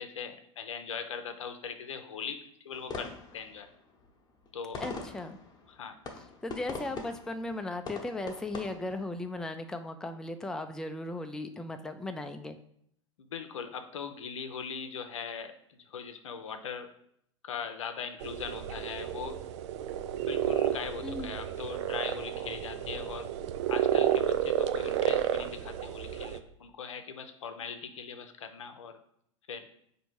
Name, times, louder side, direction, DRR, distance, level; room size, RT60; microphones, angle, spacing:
voice 1, 0.0-2.4 2.6-3.7 4.5-4.8 5.7-6.0 13.2-16.9 17.4-19.4 20.2-23.3 23.7-29.0 29.5-29.7, left 6 dB, 85° left, 7 dB, 0.6 m, -40 dB
sound 1, 2.7-9.5, left 4 dB, 25° left, 0.9 m, -43 dB
voice 2, 4.8-5.4 6.4-12.6 21.0-21.3, left 2 dB, 5° left, 7 dB, 0.4 m, -37 dB
sound 2, 18.2-26.4, right 10 dB, 65° right, 0.4 m, -31 dB
4.4 x 2.7 x 4.4 m, 0.70 s
hypercardioid pair, 90°, 16 cm